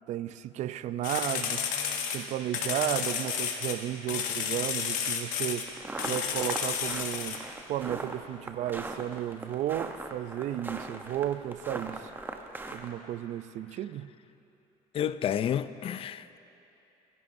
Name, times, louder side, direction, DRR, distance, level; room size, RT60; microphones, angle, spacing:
voice 1, 0.1-12.1 12.7-14.1, right 12 dB, 65° right, 0.4 m, -34 dB
sound 1, 1.0-3.8 4.1-5.7 6.0-7.4, left 7 dB, 90° left, 1.1 m, -32 dB
sound 2, 5.7-12.9, right 2 dB, 15° right, 0.8 m, -39 dB
voice 2, 14.9-16.4, left 9 dB, 45° left, 0.4 m, -30 dB
24.5 x 11.0 x 2.6 m
cardioid pair, 120°, 13 cm